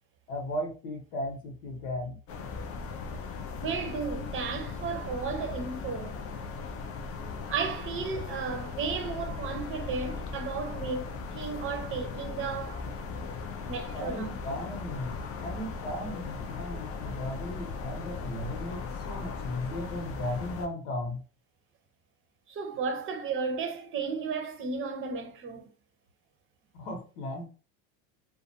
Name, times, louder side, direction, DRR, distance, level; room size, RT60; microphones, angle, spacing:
voice 1, 0.3-2.2 13.9-21.2 26.8-27.4, left 1 dB, 80° left, 1.0 m, -36 dB
sound 1, 2.3-20.7, left 4 dB, 40° left, 0.5 m, -38 dB
voice 2, 3.6-6.2 7.5-12.9 13.7-14.4 22.5-25.7, right 5 dB, 35° right, 0.7 m, -34 dB
2.5 x 2.2 x 2.6 m
supercardioid pair, 120°, 36 cm